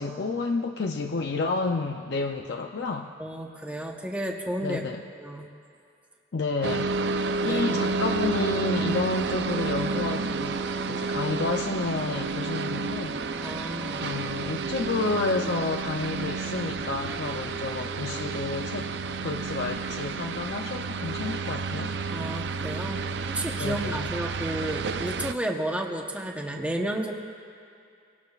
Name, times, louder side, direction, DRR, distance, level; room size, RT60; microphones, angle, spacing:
voice 1, 0.0-3.1 4.6-5.0 6.3-6.9 7.4-13.5 14.0-18.9 19.2-21.9 23.6-24.1, left 3 dB, 60° left, 2 dB, 0.6 m, -30 dB
voice 2, 3.2-4.8 5.2-5.5 7.4-8.0 13.4-14.1 22.1-23.0 23.3-27.1, right 1 dB, 5° right, 1 dB, 0.9 m, -32 dB
sound 1, 6.6-25.3, right 4 dB, 65° right, 0.5 m, -30 dB
24.5 x 18.0 x 2.4 m, 2.5 s
head